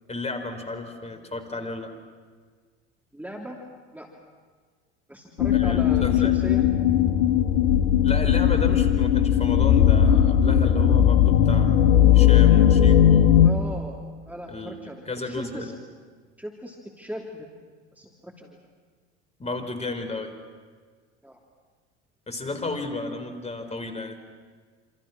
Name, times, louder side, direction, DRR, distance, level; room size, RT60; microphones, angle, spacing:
voice 1, 0.1-1.9 5.5-6.4 8.0-11.9 12.1-13.3 14.5-15.8 19.4-20.3 22.3-24.2, left 3 dB, 20° left, 6 dB, 4.6 m, -33 dB
voice 2, 3.1-3.6 3.9-4.1 5.1-6.6 13.4-14.0 14.3-15.0 15.2-15.7 16.4-17.5 18.0-18.5 21.2-21.4, equal, 5° right, 0 dB, 3.1 m, -37 dB
sound 1, 5.4-13.5, left 10 dB, 65° left, 1.8 m, -18 dB
27.5 x 27.5 x 6.1 m, 1.5 s
hypercardioid pair, 75°, 33 cm